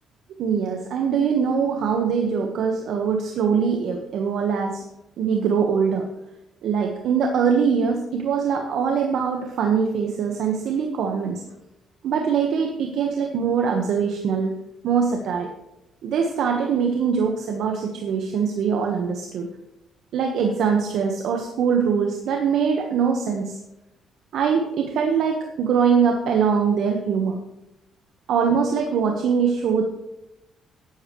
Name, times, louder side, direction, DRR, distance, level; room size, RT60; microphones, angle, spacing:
voice 1, 0.4-4.8 5.2-6.0 6.6-11.4 12.0-14.5 14.8-15.5 16.0-19.5 20.1-23.6 24.3-27.4 28.3-29.8, right 6 dB, 75° right, 2 dB, 1.3 m, -22 dB
12.0 x 11.0 x 3.2 m, 0.89 s
cardioid pair, 90°, 0 cm